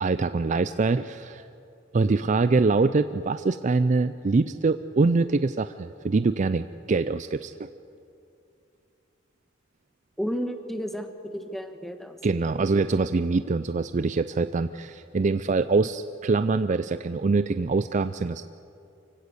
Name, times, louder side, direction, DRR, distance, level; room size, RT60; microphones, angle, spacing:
voice 1, 0.0-1.4 1.9-7.7 12.2-18.4, right 3 dB, 40° right, 12 dB, 0.4 m, -24 dB
voice 2, 10.2-12.7, equal, ahead, 6 dB, 1.3 m, -33 dB
24.5 x 16.0 x 8.3 m, 2.6 s
head